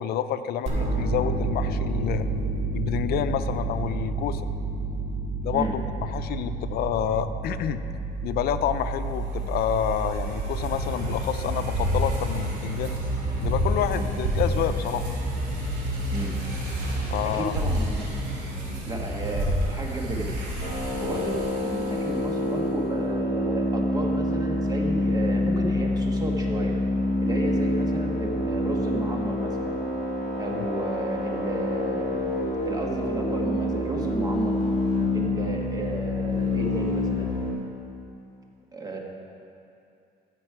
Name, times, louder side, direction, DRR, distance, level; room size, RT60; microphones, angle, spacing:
voice 1, 0.0-2.3 2.7-4.5 5.4-7.8 8.2-12.9 13.4-15.1 17.1-17.5 30.5-30.7, left 9 dB, 65° left, 10 dB, 0.5 m, -28 dB
sound 1, 0.7-11.6, right 3 dB, 40° right, 2.0 m, -30 dB
sound 2, 9.0-22.4, equal, 90° right, 2.7 m, -29 dB
voice 2, 17.2-18.4 18.8-20.3 21.0-26.8 27.2-29.7 30.4-32.2 32.6-34.6 35.1-37.3 38.7-39.0, right 2 dB, 20° right, 0 dB, 1.4 m, -33 dB
sound 3, 20.6-37.5, left 1 dB, 30° left, 2.4 m, -27 dB
15.5 x 5.3 x 4.7 m, 2.6 s
cardioid pair, 110°, 17 cm